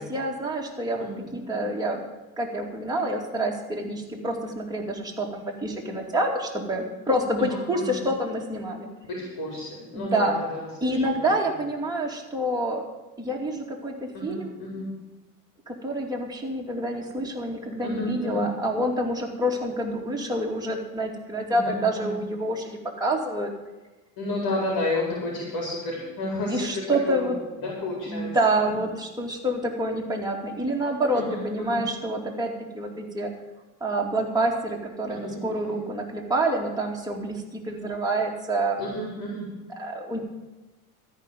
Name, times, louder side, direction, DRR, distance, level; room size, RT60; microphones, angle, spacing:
voice 1, 0.0-1.1 1.3-2.0 2.4-8.9 9.9-10.4 10.8-12.8 13.2-14.6 15.7-23.5 26.5-27.4 28.1-33.3 33.8-38.8 39.8-40.2, right 1 dB, 10° right, -2 dB, 2.5 m, -27 dB
voice 2, 1.0-1.6 7.5-8.0 9.1-11.3 14.1-14.9 17.8-18.5 21.5-22.1 24.2-27.3 27.6-28.4 31.1-31.8 35.1-35.4 35.7-35.8 38.8-39.5, left 1 dB, 50° left, -2 dB, 4.3 m, -32 dB
13.5 x 5.3 x 9.3 m, 1.1 s
hypercardioid pair, 80°, 45 cm